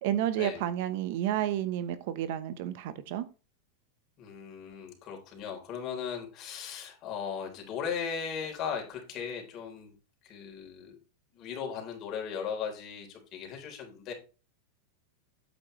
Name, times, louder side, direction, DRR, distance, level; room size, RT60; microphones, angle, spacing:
voice 1, 0.0-3.3, right 11 dB, 60° right, 0.9 m, -31 dB
voice 2, 4.2-9.9 10.2-11.0 11.3-14.1, left 7 dB, 40° left, 3.6 m, -37 dB
8.7 x 8.4 x 3.2 m
supercardioid pair, 125°, 0 cm